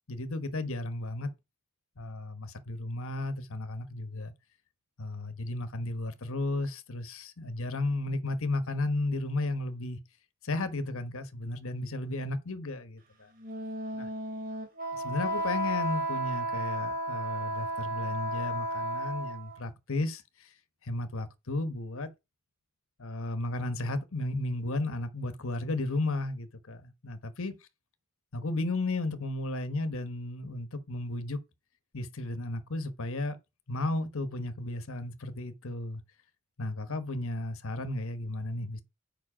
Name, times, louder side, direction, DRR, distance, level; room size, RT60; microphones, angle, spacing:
voice 1, 0.1-1.3 2.0-4.3 5.0-10.0 10.4-13.3 13.9-14.1 14.9-20.5 20.8-22.1 23.0-27.5 28.3-31.4 31.9-33.4 33.7-36.0 36.6-38.8, left 2 dB, 65° left, 1.1 m, -34 dB
Wind instrument woodwind instrument, 13.4-19.6, right 1 dB, 40° right, 2.7 m, -33 dB
7.4 x 5.5 x 4.9 m
head